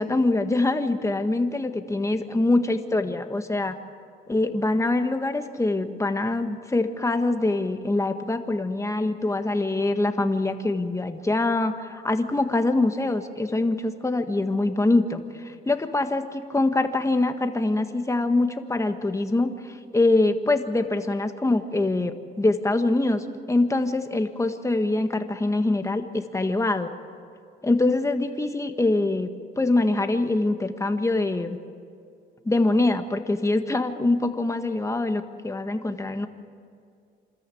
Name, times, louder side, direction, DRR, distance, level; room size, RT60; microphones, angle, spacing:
voice 1, 0.0-3.7 4.3-26.9 27.6-29.3 29.6-31.6 32.4-36.3, left 2 dB, 15° left, 7 dB, 1.6 m, -24 dB
26.0 x 13.5 x 8.5 m, 2.3 s
cardioid pair, 90°, 20 cm